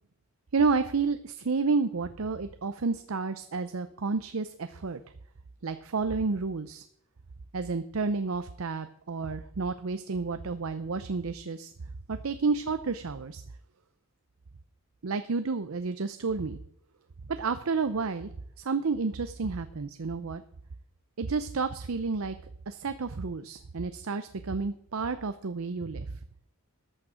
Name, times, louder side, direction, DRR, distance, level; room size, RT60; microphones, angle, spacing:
voice 1, 0.5-5.0 5.6-6.8 7.5-11.7 12.1-13.4 15.0-16.6 17.3-18.3 18.6-20.4 21.2-22.4 22.7-26.1, right 4 dB, 80° right, 10 dB, 0.6 m, -30 dB
14.0 x 8.8 x 5.0 m, 0.71 s
head